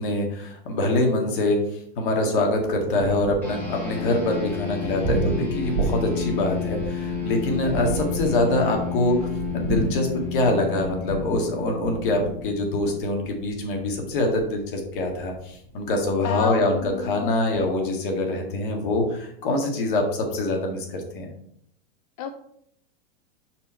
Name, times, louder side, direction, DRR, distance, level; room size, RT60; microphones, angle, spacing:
voice 1, 0.0-9.3 9.5-21.3, left 2 dB, 60° left, 2 dB, 1.9 m, -24 dB
Thunder, 2.5-17.8, right 3 dB, 25° right, 1.8 m, -33 dB
sound 1, 3.4-13.1, left 8 dB, 5° left, 1.7 m, -32 dB
voice 2, 16.2-17.3 22.2-22.3, left 7 dB, 40° left, 6 dB, 0.4 m, -30 dB
5.5 x 4.7 x 4.4 m, 0.69 s
supercardioid pair, 150°, 29 cm